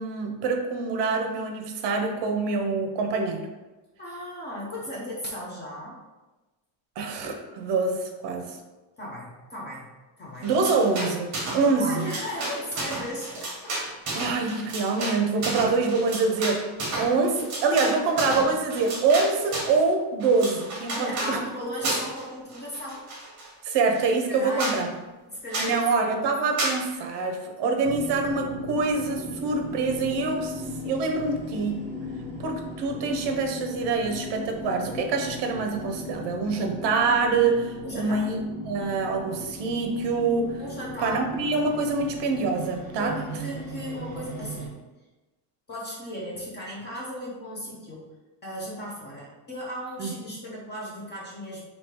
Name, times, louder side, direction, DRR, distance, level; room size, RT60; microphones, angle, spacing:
voice 1, 0.0-3.5 7.0-8.6 10.4-12.1 14.1-16.6 16.9-21.4 23.6-24.9 25.6-31.8 32.4-38.4 38.6-40.6 41.0-43.2 50.0-50.1, right 4 dB, 60° right, 4 dB, 0.7 m, -25 dB
voice 2, 4.0-6.0 9.0-9.9 10.2-10.5 11.8-13.7 20.9-23.0 24.3-24.8 25.3-26.1 37.8-38.2 40.6-41.4 43.0-44.7 45.7-48.0 48.4-51.6, equal, 20° left, -4 dB, 0.7 m, -36 dB
sound 1, 10.4-11.7 11.9-19.8 20.2-21.3 21.8-22.2 22.5-23.5 23.9-24.0 24.3-24.4 24.6-24.8 25.5-25.8 26.6-26.8, right 2 dB, 35° right, 1.1 m, -32 dB
sound 2, 27.8-44.7, left 1 dB, 5° left, 1.2 m, -38 dB
3.1 x 2.8 x 4.4 m, 1.1 s
cardioid pair, 175°, 48 cm